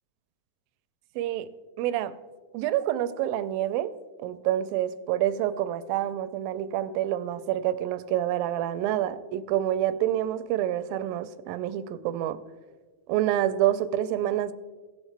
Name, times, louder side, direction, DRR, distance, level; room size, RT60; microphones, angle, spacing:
voice 1, 1.2-1.5 1.8-2.1 2.5-3.9 4.2-12.4 13.1-14.5, right 12 dB, 85° right, 13 dB, 2.3 m, -27 dB
17.5 x 7.2 x 3.3 m, 1.4 s
omnidirectional pair, 4.1 m